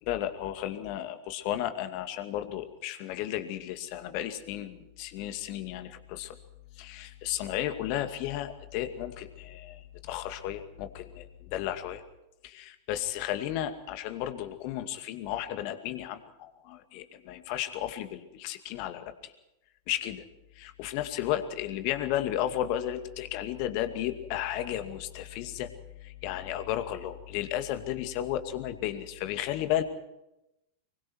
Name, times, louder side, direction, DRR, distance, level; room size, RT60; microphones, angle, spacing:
voice 1, 0.0-6.4 6.7-12.0 12.4-19.3 19.9-20.2 20.5-25.7 26.0-29.8, left 12 dB, 45° left, 8 dB, 2.3 m, -33 dB
25.5 x 23.5 x 4.7 m, 0.88 s
figure-of-eight pair, 90°, 0 cm